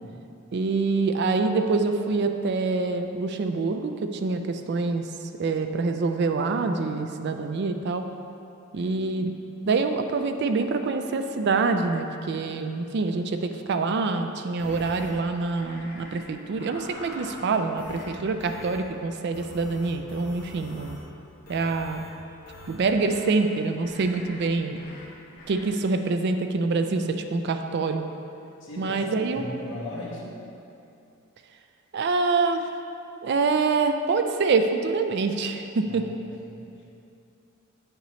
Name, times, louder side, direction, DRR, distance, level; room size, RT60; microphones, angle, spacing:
voice 1, 0.5-5.0 5.4-8.0 8.7-9.3 9.6-21.0 21.5-22.1 22.7-24.8 25.5-28.0 28.8-29.4 31.9-32.7 33.2-36.1, right 3 dB, 50° right, 7 dB, 0.4 m, -25 dB
sound 1, 14.6-15.1 15.6-16.2 16.5-17.4 17.8-18.1 18.4-18.8 19.3-21.0 21.4-22.1 22.4-23.3 23.8-24.5 24.8-25.0 25.4-25.7, left 1 dB, 40° left, 1.2 m, -44 dB
voice 2, 28.6-29.0 29.3-30.4 35.8-36.0 36.5-36.8, left 2 dB, 60° left, -5 dB, 1.4 m, -38 dB
8.0 x 6.6 x 3.1 m, 2.7 s
head